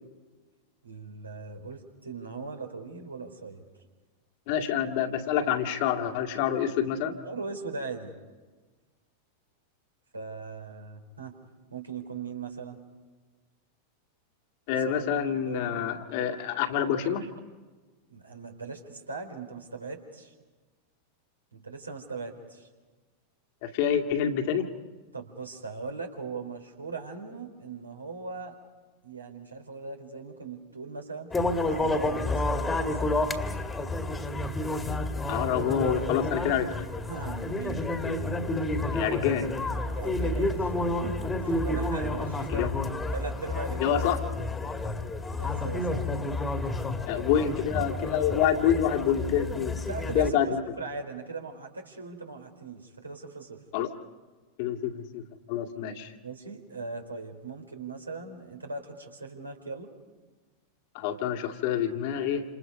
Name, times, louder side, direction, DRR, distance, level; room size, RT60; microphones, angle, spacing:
voice 1, 0.8-3.6 7.2-8.1 10.1-11.4 11.7-12.8 14.7-14.9 15.5-15.8 17.1-17.3 18.1-20.3 21.5-22.7 25.1-28.6 29.0-31.3 31.7-33.3 37.1-37.8 40.0-40.7 41.0-42.6 43.1-44.0 45.3-46.0 49.9-53.6 56.2-59.9, right 4 dB, 80° right, 3 dB, 3.7 m, -39 dB
voice 2, 4.5-7.2 14.7-17.2 23.6-24.7 35.3-36.7 38.9-39.5 42.5-42.7 43.8-44.2 47.1-49.7 50.1-50.6 53.7-53.9 54.6-55.2 55.5-56.1 60.9-62.4, left 9 dB, 50° left, 4 dB, 2.2 m, -27 dB
sound 1, 31.3-50.3, left 2 dB, 15° left, 2.1 m, -30 dB
29.0 x 27.5 x 5.4 m, 1.3 s
figure-of-eight pair, 90°, 0 cm